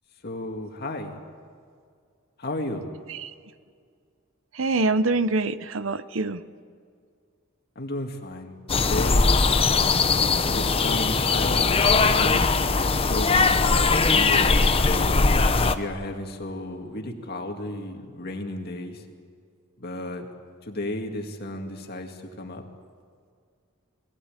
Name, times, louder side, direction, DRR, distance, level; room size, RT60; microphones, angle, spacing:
voice 1, 0.2-1.2 2.4-2.9 7.8-9.3 10.5-12.5 12.9-15.1 15.7-19.1 19.8-20.3 20.6-22.6, left 1 dB, 50° left, 3 dB, 2.1 m, -33 dB
voice 2, 4.5-6.4, right 3 dB, 75° right, 14 dB, 0.8 m, -25 dB
sound 1, 8.7-15.7, left 4 dB, 30° left, 0.8 m, -20 dB
21.0 x 17.0 x 9.0 m, 2.2 s
head